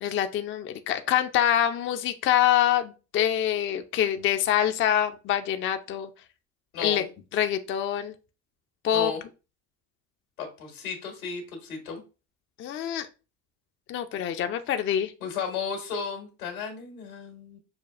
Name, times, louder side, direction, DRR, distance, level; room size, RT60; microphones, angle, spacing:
voice 1, 0.0-6.1 6.8-7.1 7.3-8.1 8.8-9.1 12.6-13.1 13.9-15.1, left 10 dB, 30° left, 8 dB, 0.4 m, -25 dB
voice 2, 6.7-7.1 8.9-9.2 10.4-12.0 15.2-17.6, left 6 dB, 90° left, 3 dB, 1.6 m, -34 dB
6.7 x 2.3 x 2.4 m, 0.32 s
hypercardioid pair, 75°, 42 cm